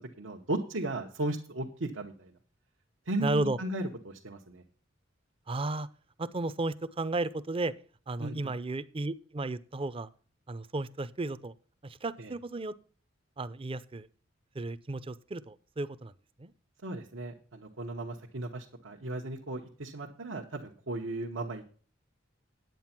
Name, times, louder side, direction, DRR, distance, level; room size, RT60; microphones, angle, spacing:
voice 1, 0.2-2.3 3.0-4.6 8.2-8.5 12.2-12.3 16.8-21.6, right 2 dB, 80° right, 0 dB, 1.1 m, -36 dB
voice 2, 3.2-3.6 5.5-5.9 6.2-7.7 8.1-10.1 10.5-11.5 11.8-12.7 13.4-14.1 14.5-16.1 16.4-16.5, right 2 dB, 30° right, 16 dB, 0.5 m, -33 dB
9.3 x 8.9 x 5.9 m, 0.42 s
head